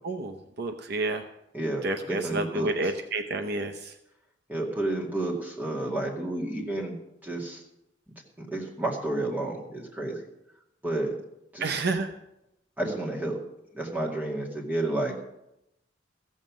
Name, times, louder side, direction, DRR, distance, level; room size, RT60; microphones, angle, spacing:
voice 1, 0.0-1.2 1.8-3.9 11.6-12.1, right 2 dB, 60° right, 6 dB, 0.8 m, -30 dB
voice 2, 1.5-2.7 4.5-7.0 7.2-7.6 8.4-10.2 10.8-11.1 11.5-11.7 12.8-13.4 13.7-15.1, right 2 dB, 10° right, -2 dB, 2.2 m, -30 dB
15.0 x 7.4 x 6.2 m, 0.85 s
head